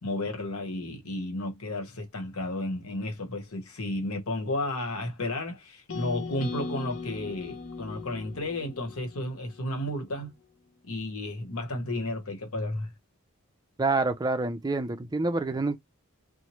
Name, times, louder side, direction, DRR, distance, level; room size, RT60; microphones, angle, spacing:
voice 1, 0.0-10.3 10.9-12.9, left 1 dB, 80° left, 1.0 m, -33 dB
sound 1, 5.9-10.0, left 4 dB, 65° left, 0.7 m, -39 dB
voice 2, 13.8-15.8, right 3 dB, 20° right, 0.4 m, -27 dB
3.0 x 2.1 x 2.9 m
head